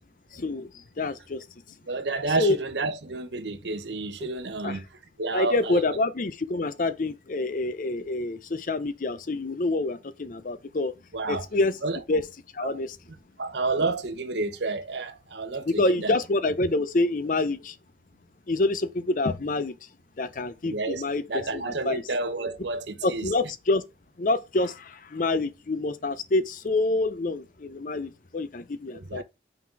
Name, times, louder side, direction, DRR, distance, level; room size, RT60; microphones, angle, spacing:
voice 1, 0.3-1.4 2.4-2.6 4.2-4.3 4.6-4.8 5.3-10.9 11.3-11.8 12.1-12.2 12.5-12.9 15.7-17.8 18.5-19.8 20.2-22.0 23.0-23.8 24.2-29.2, left 2 dB, 45° left, 0.5 m, -27 dB
voice 2, 1.9-4.8 5.2-6.0 11.1-11.4 11.8-12.0 12.6-12.8 13.4-16.2 20.6-23.3 28.9-29.2, right 3 dB, 70° right, 0.9 m, -30 dB
5.9 x 4.0 x 4.6 m
head